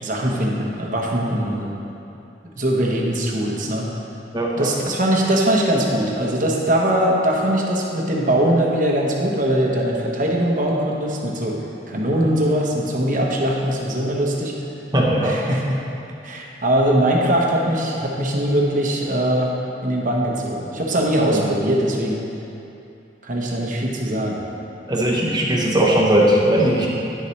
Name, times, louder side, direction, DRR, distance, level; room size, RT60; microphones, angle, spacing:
voice 1, 0.0-1.7 2.6-3.9 4.6-11.6 11.9-14.5 15.2-15.8 16.2-19.5 19.8-22.2 23.2-24.4, right 1 dB, 45° right, -2 dB, 1.0 m, -21 dB
voice 2, 4.3-4.7 14.9-15.4 21.3-21.5 24.9-26.9, right 1 dB, 25° right, -3 dB, 1.1 m, -18 dB
9.9 x 6.9 x 3.2 m, 2.8 s
head